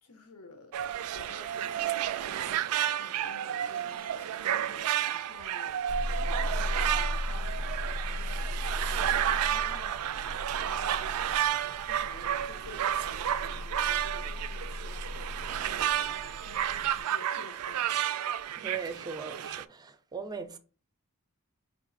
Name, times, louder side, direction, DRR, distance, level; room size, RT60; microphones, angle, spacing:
voice 1, 0.0-0.8 1.1-2.4 2.9-18.0, left 3 dB, 90° left, 0.7 m, -52 dB
sound 1, 0.7-19.6, right 10 dB, 85° right, 0.3 m, -31 dB
sound 2, 5.9-17.0, left 1 dB, 55° left, 0.4 m, -37 dB
voice 2, 18.5-20.6, right 5 dB, 20° right, 0.4 m, -39 dB
4.9 x 2.4 x 3.9 m
head